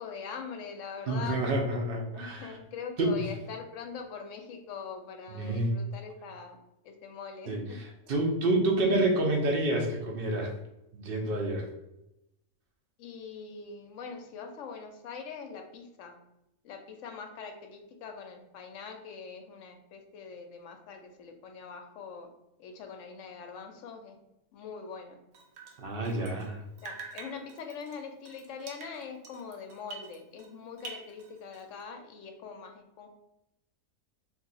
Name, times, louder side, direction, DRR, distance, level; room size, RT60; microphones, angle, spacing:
voice 1, 0.0-1.5 2.1-6.6 6.8-7.8 8.2-8.3 13.0-16.1 16.6-22.3 22.6-24.2 24.5-25.2 26.8-33.1, left 6 dB, 70° left, 5 dB, 0.8 m, -43 dB
voice 2, 1.1-2.6 3.0-3.1 5.3-5.8 7.5-10.5 10.9-11.7 25.8-26.6, right 2 dB, 55° right, 1 dB, 0.6 m, -28 dB
Drip, 25.3-26.5 26.8-30.5 30.8-31.8, right 3 dB, 85° right, 1.0 m, -47 dB
2.7 x 2.5 x 4.0 m, 0.88 s
omnidirectional pair, 1.5 m